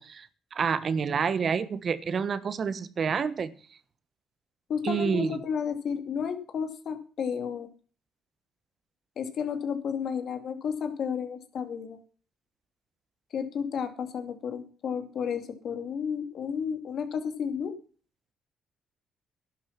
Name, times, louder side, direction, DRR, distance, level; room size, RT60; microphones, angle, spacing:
voice 1, 0.0-3.5 4.8-5.4, right 6 dB, 50° right, 14 dB, 1.3 m, -28 dB
voice 2, 4.7-7.7 9.2-12.0 13.3-17.8, left 7 dB, 65° left, 8 dB, 2.6 m, -32 dB
11.5 x 11.0 x 5.9 m, 0.40 s
cardioid pair, 90°, 0 cm